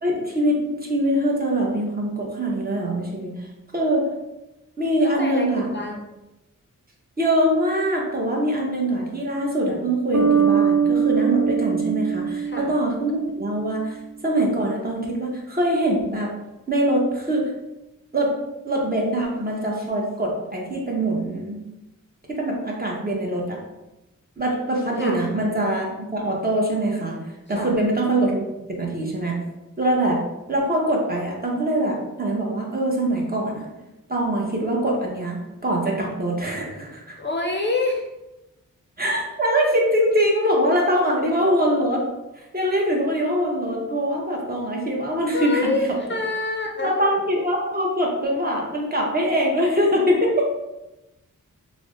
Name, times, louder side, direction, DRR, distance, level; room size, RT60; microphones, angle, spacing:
voice 1, 0.0-3.3 3.7-4.1 4.8-5.7 7.2-14.0 14.2-16.3 16.7-17.5 18.1-18.3 18.6-21.6 22.3-23.6 24.4-27.2 27.5-28.4 28.8-29.4 29.8-30.2 30.5-33.7 34.1-37.2 39.0-42.0 42.5-45.7 46.8-50.5, right 1 dB, 30° right, -2 dB, 0.8 m, -23 dB
voice 2, 5.0-6.0 12.4-12.7 25.0-25.2 27.5-27.8 37.2-38.1 45.3-46.9, left 2 dB, 35° left, 1 dB, 0.5 m, -27 dB
Bass guitar, 10.1-13.7, right 7 dB, 60° right, 0.5 m, -22 dB
3.3 x 2.1 x 3.7 m, 0.98 s
wide cardioid pair, 75°, 33 cm